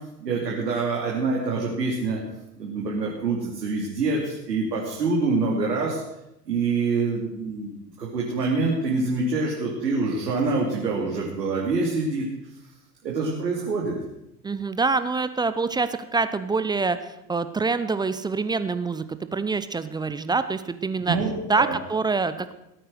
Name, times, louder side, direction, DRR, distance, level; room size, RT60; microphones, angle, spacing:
voice 1, 0.2-2.2 2.6-6.0 6.5-12.3 13.0-13.9 21.1-21.7, right 3 dB, 80° right, -3 dB, 3.0 m, -26 dB
voice 2, 14.4-19.0 19.3-21.2 21.5-22.6, right 4 dB, 10° right, 12 dB, 0.4 m, -25 dB
17.5 x 8.9 x 6.4 m, 0.87 s
figure-of-eight pair, 85°, 48 cm